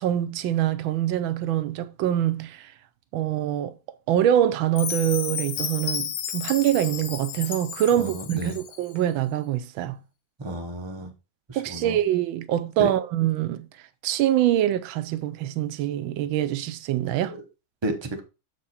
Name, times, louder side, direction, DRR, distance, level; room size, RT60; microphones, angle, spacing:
voice 1, 0.0-2.7 3.1-3.7 4.1-10.0 11.5-13.7 14.0-17.4, right 12 dB, 80° right, 1.4 m, -24 dB
Chime, 4.8-8.8, left 9 dB, 85° left, 1.7 m, -32 dB
voice 2, 8.0-8.6 10.4-11.1 11.5-12.0 12.8-12.9 17.3-17.4 17.8-18.2, right 1 dB, 30° right, 0.5 m, -31 dB
7.7 x 4.8 x 4.1 m
omnidirectional pair, 2.2 m